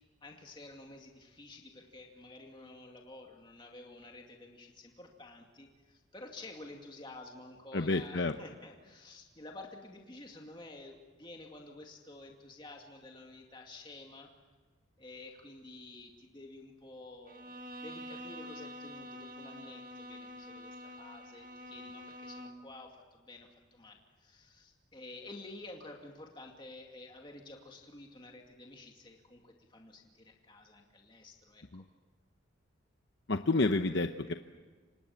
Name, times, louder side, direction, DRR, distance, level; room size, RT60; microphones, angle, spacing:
voice 1, 0.2-14.3 15.0-31.6, left 2 dB, 25° left, 1 dB, 2.4 m, -51 dB
voice 2, 7.7-8.3 31.7-31.8 33.3-34.3, left 2 dB, 60° left, 7 dB, 0.9 m, -29 dB
Bowed string instrument, 17.3-22.7, equal, 40° right, 1.8 m, -47 dB
29.0 x 26.0 x 7.2 m, 1.4 s
head